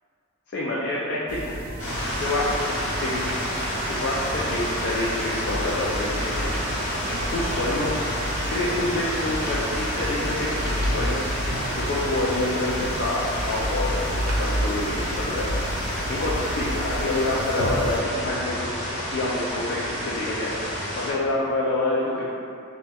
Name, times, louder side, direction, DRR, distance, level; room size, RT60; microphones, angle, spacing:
voice 1, 0.5-1.5 2.2-3.2 3.9-6.5 7.3-8.0 8.4-11.3 11.7-15.5 16.1-18.7 19.0-20.5 20.9-22.2, left 2 dB, 55° left, -6 dB, 0.3 m, -27 dB
sound 1, 1.3-18.0, equal, 90° right, 0.4 m, -31 dB
sound 2, 1.8-21.1, equal, 75° left, 1.0 m, -30 dB
4.1 x 2.2 x 2.2 m, 2.5 s
head